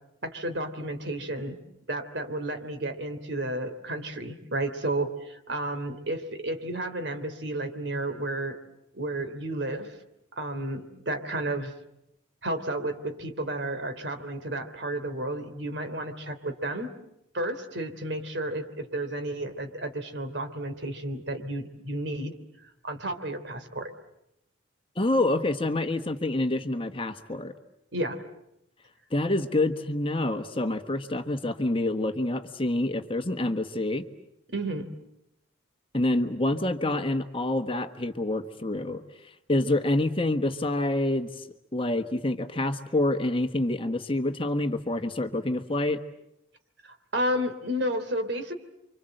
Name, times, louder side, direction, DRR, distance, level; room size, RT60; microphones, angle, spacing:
voice 1, 0.2-1.6 1.9-8.6 8.9-9.9 10.4-11.7 12.4-16.9 17.3-22.3 22.8-23.9 27.9-28.2 34.5-34.9 46.8-48.5, right 1 dB, 65° right, 8 dB, 3.2 m, -32 dB
voice 2, 25.0-27.5 29.1-34.0 35.9-39.0 39.5-41.5 41.7-46.0, left 1 dB, 25° left, 8 dB, 1.3 m, -27 dB
30.0 x 25.5 x 7.9 m, 0.82 s
head